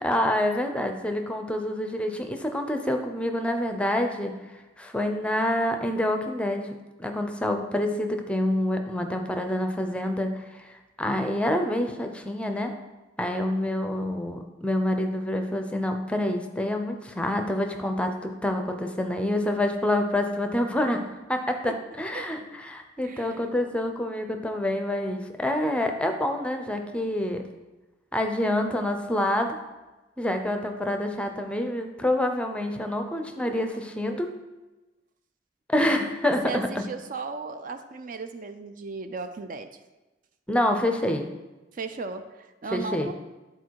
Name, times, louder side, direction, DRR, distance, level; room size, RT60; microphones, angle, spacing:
voice 1, 0.0-4.3 4.8-6.7 7.0-10.6 11.0-12.7 13.2-27.4 28.1-29.6 30.2-34.3 35.7-36.8 40.5-41.3 42.7-43.1, left 1 dB, 5° left, 5 dB, 0.6 m, -27 dB
voice 2, 23.0-23.5 36.4-39.7 41.7-43.1, right 4 dB, 50° right, 9 dB, 0.4 m, -36 dB
10.5 x 4.2 x 4.7 m, 1.1 s
head